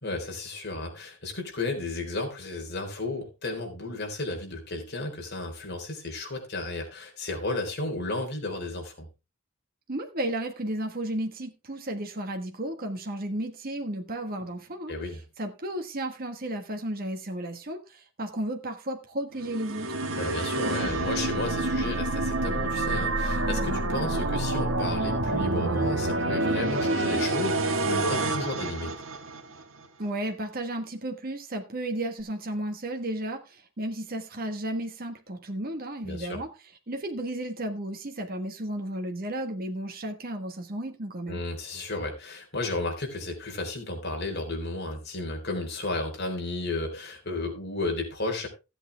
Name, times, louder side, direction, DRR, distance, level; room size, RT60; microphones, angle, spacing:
voice 1, 0.0-9.1 14.9-15.2 20.1-29.0 36.0-36.4 41.3-48.5, left 2 dB, 55° left, 3.8 m, -33 dB
voice 2, 9.9-14.9 15.4-19.9 30.0-36.5 36.9-41.4, right 1 dB, 45° right, 1.4 m, -33 dB
sound 1, 19.4-29.6, right 2 dB, 70° right, 1.5 m, -28 dB
14.5 x 8.2 x 3.4 m
head